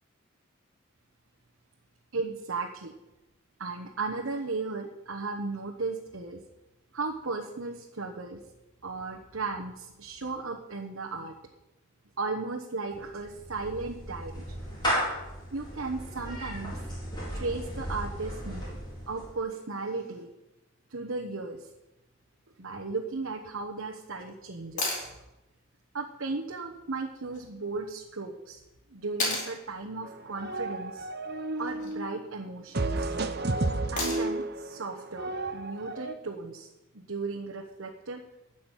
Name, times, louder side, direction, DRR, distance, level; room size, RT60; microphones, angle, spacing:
voice 1, 2.1-2.9 3.6-6.4 6.9-8.4 8.8-11.3 12.2-14.6 15.5-16.8 17.3-18.8 19.1-20.3 20.9-21.7 22.6-25.0 25.9-28.6 28.9-31.1 31.6-33.2 33.9-36.7 36.9-38.2, right 3 dB, 70° right, 0 dB, 1.1 m, -35 dB
Clapping / Meow, 13.0-19.4, equal, 20° left, 4.3 m, -35 dB
sound 1, 24.8-25.1 27.3-27.4 29.2-29.5 31.5-32.0 34.0-34.4 36.6-36.7, left 2 dB, 35° left, 4.2 m, -31 dB
sound 2, 30.1-32.2 32.8-36.1, right 2 dB, 50° right, 0.9 m, -32 dB
13.0 x 6.1 x 9.1 m, 0.97 s
head